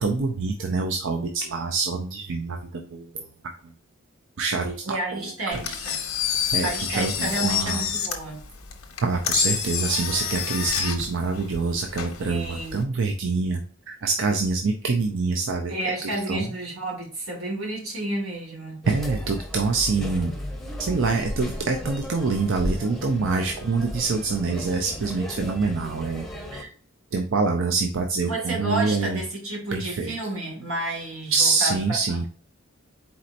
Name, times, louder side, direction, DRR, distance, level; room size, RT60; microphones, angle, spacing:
voice 1, 0.0-3.3 4.4-5.6 6.5-7.8 9.0-15.7 16.0-16.5 18.9-20.3 20.8-26.3 26.5-26.7 27.1-29.2 29.7-30.1 31.3-32.3, right 4 dB, 60° right, 0.5 m, -26 dB
voice 2, 4.8-5.9 6.6-8.4 12.3-12.8 15.7-18.8 28.3-31.8 32.1-32.3, right 1 dB, 85° right, 2.0 m, -30 dB
Engine, 5.5-12.8, left 8 dB, 75° left, 0.9 m, -28 dB
sound 1, 18.8-26.6, left 1 dB, ahead, 0.7 m, -35 dB
4.3 x 4.2 x 2.5 m
head